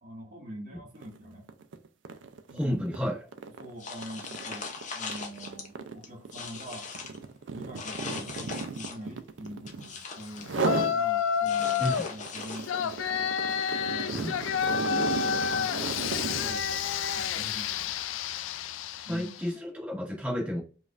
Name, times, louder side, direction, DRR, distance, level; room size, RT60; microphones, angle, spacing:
voice 1, 0.0-1.5 2.5-2.9 3.6-6.9 7.5-14.4 14.7-16.7 17.1-18.0 19.0-19.4, equal, 40° right, 1.6 m, -44 dB
sound 1, 1.0-1.2 1.5-9.9 10.4-11.0 11.4-16.6, right 4 dB, 75° right, 0.4 m, -35 dB
voice 2, 2.5-3.2 11.8-12.0 14.1-14.3 19.0-20.6, equal, 10° right, 1.6 m, -31 dB
sound 2, 3.8-5.7 6.0-7.2 7.8-9.1 9.4-10.5 11.4-13.0, left 5 dB, 40° left, 0.6 m, -40 dB
Yell, 10.6-12.1 12.7-19.4, left 8 dB, 85° left, 0.3 m, -29 dB
5.1 x 2.5 x 2.4 m
head